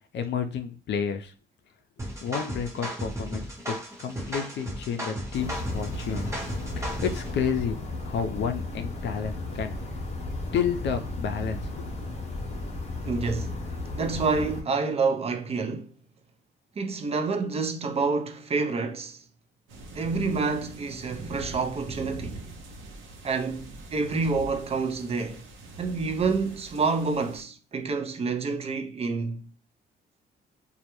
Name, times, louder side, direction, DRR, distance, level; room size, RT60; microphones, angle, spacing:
voice 1, 0.1-1.3 2.2-9.7 10.5-11.9, left 7 dB, 65° left, 0.5 m, -31 dB
sound 1, 2.0-7.3, equal, 15° right, 0.9 m, -35 dB
sound 2, 5.3-14.6, left 2 dB, 35° left, 0.8 m, -34 dB
voice 2, 13.0-15.9 16.8-19.2 20.0-22.5 23.2-25.4 25.8-29.5, right 4 dB, 30° right, 0.5 m, -28 dB
sound 3, 19.7-27.4, right 1 dB, 80° right, 0.7 m, -43 dB
2.3 x 2.0 x 2.9 m
cardioid pair, 90°, 20 cm